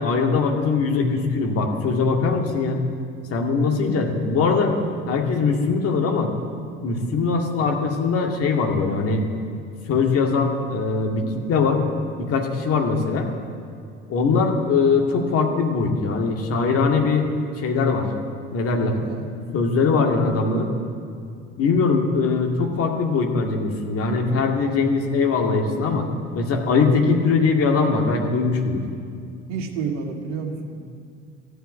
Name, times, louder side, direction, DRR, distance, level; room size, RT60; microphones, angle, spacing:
voice 1, 0.0-2.8 3.3-4.7 5.1-6.3 6.8-9.2 9.9-11.8 12.2-13.3 14.1-17.3 17.6-18.1 18.5-19.0 19.5-20.7 21.6-26.1 26.3-28.8, left 4 dB, 40° left, 1 dB, 2.2 m, -21 dB
voice 2, 29.5-30.9, right 5 dB, 55° right, 1 dB, 2.0 m, -30 dB
13.5 x 8.0 x 9.8 m, 2.3 s
figure-of-eight pair, 60°, 34 cm